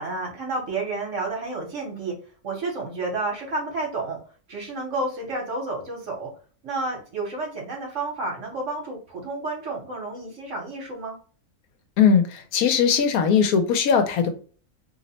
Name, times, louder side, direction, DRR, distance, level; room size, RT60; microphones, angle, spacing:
voice 1, 0.0-2.2 2.4-4.2 4.5-6.3 6.6-11.2, right 2 dB, 60° right, 0 dB, 1.1 m, -30 dB
voice 2, 12.0-14.3, left 7 dB, 75° left, 7 dB, 1.0 m, -19 dB
2.7 x 2.1 x 3.9 m, 0.41 s
omnidirectional pair, 1.6 m